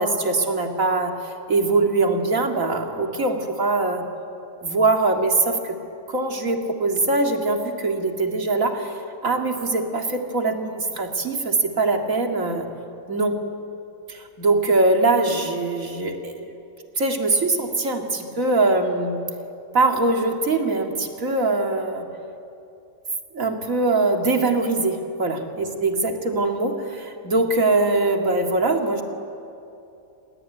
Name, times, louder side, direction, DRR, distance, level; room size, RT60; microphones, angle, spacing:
voice 1, 0.0-4.0 4.6-5.8 6.1-12.7 13.1-13.5 14.4-16.5 17.0-19.2 19.7-22.1 23.3-29.0, right 2 dB, 70° right, 3 dB, 2.7 m, -22 dB
28.5 x 19.5 x 9.2 m, 2.7 s
omnidirectional pair, 1.5 m